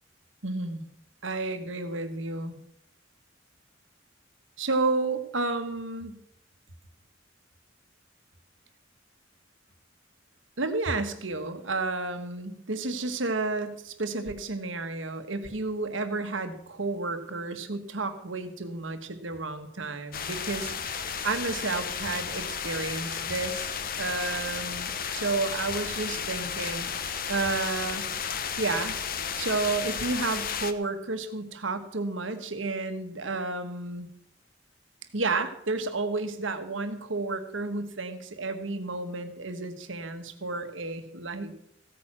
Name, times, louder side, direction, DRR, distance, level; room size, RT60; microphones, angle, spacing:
voice 1, 0.4-0.8 1.2-2.6 4.6-6.2 10.6-23.7 24.0-28.1 28.6-29.0 29.4-34.1 35.1-41.5, right 3 dB, 75° right, 8 dB, 1.5 m, -31 dB
sound 1, 20.1-30.7, left 7 dB, 45° left, 0.9 m, -33 dB
15.5 x 9.0 x 6.2 m, 0.72 s
head